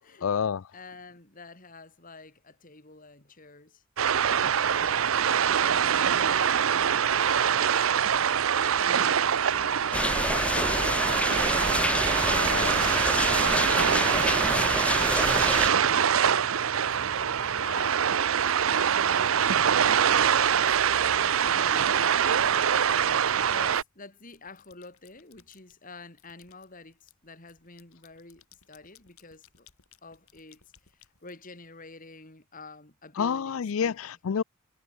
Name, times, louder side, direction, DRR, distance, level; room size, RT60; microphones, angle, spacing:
voice 1, 0.2-0.7 12.3-13.0 33.2-34.4, left 7 dB, 70° left, 0.4 m, -29 dB
voice 2, 0.7-3.8 4.7-7.9 8.7-11.2 12.5-16.2 16.8-18.0 18.3-20.3 20.6-22.1 22.4-22.9 23.5-29.7 30.0-30.6 30.9-34.0, left 3 dB, 40° left, 3.4 m, -49 dB
sound 1, 4.0-23.8, right 8 dB, 70° right, 0.6 m, -24 dB
sound 2, 9.9-15.7, left 2 dB, 5° left, 0.4 m, -27 dB
sound 3, 23.3-23.8 24.2-25.8 26.2-31.9, left 9 dB, 90° left, 5.6 m, -61 dB
head